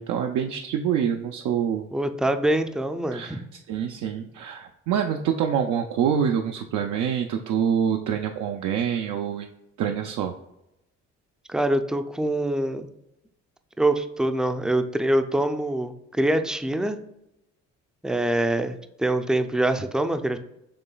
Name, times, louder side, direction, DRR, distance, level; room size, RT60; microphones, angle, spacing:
voice 1, 0.0-1.9 3.1-3.4 3.7-9.5 9.8-10.3, right 8 dB, 80° right, 3 dB, 0.5 m, -26 dB
voice 2, 1.9-3.4 11.5-12.9 13.8-17.0 18.0-20.4, right 1 dB, ahead, 8 dB, 0.4 m, -24 dB
6.9 x 3.1 x 2.3 m, 0.85 s
cardioid pair, 90°, 30 cm